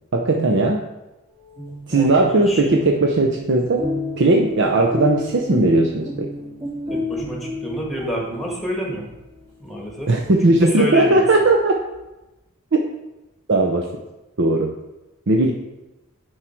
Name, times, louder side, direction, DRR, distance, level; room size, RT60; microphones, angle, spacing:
voice 1, 0.1-0.8 1.9-3.9 4.2-6.3 10.1-11.7 13.5-13.8 14.4-14.7 15.3-15.5, right 2 dB, 60° right, 2 dB, 0.7 m, -17 dB
sound 1, 1.4-9.0, left 1 dB, 25° right, 2.0 m, -31 dB
voice 2, 1.9-2.8 4.6-4.7 6.9-9.1 9.6-10.1 10.4-11.3, equal, ahead, -1 dB, 1.8 m, -29 dB
9.9 x 4.8 x 4.5 m, 1.0 s
head